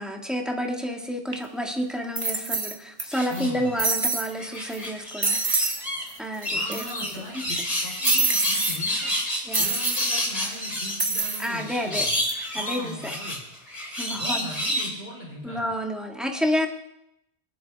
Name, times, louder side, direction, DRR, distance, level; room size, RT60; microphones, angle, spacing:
voice 1, 0.0-5.4 6.2-7.4 9.4-9.7 11.4-12.0 12.5-12.9 14.0-14.5 15.4-16.7, equal, ahead, 1 dB, 1.7 m, -30 dB
sound 1, 1.3-1.4 2.2-3.0 3.3-3.4 3.8-4.3 4.7-4.9 5.2-5.8 6.1-6.2 6.4-7.1 8.0-8.8 9.5-10.1 11.0-11.5 12.0-12.3, right 3 dB, 20° right, 1.2 m, -26 dB
sound 2, 3.1-3.9 4.3-6.0 6.4-14.9, left 1 dB, 35° left, 2.7 m, -29 dB
voice 2, 3.3-3.8 6.5-9.1 9.6-12.2 12.5-13.4 14.1-15.7, left 1 dB, 70° left, -2 dB, 4.0 m, -39 dB
23.0 x 11.0 x 3.5 m, 0.85 s
omnidirectional pair, 1.0 m